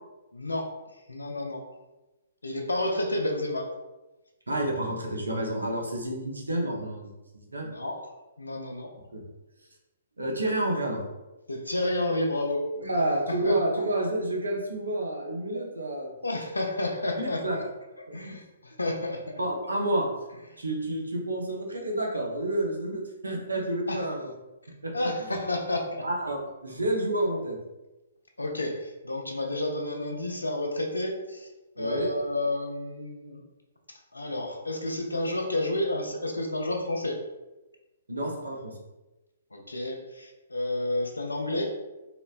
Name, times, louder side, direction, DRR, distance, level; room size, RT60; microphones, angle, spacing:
voice 1, 0.3-0.7 1.1-1.6 2.4-3.7 7.6-8.0 8.4-8.9 11.5-12.6 13.4-13.6 16.2-17.6 18.0-19.4 23.9-24.1 24.9-26.0 28.4-31.5 31.8-33.4 33.9-37.2 39.5-41.7, left 1 dB, 85° left, 2 dB, 0.5 m, -30 dB
voice 2, 4.5-7.7 9.1-9.2 10.2-11.0 12.8-16.1 17.2-17.6 18.1-18.4 19.4-20.1 20.6-24.3 24.8-24.9 26.0-27.6 31.8-32.1 38.1-38.7, right 1 dB, 85° right, -1 dB, 0.6 m, -29 dB
3.0 x 2.0 x 2.4 m, 1.1 s
figure-of-eight pair, 125°, 0 cm